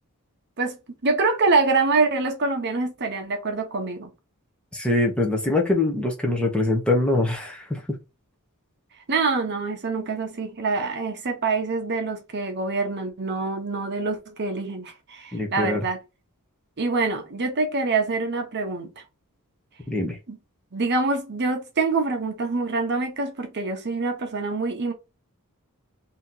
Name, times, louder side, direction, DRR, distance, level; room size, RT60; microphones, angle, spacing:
voice 1, 0.6-4.1 9.1-16.0 16.8-19.0 20.3-20.4 20.7-24.9, right 3 dB, 50° right, 0.8 m, -25 dB
voice 2, 4.7-7.8 15.3-15.8 19.9-20.2, left 2 dB, 5° left, 0.7 m, -23 dB
2.9 x 2.8 x 3.7 m
head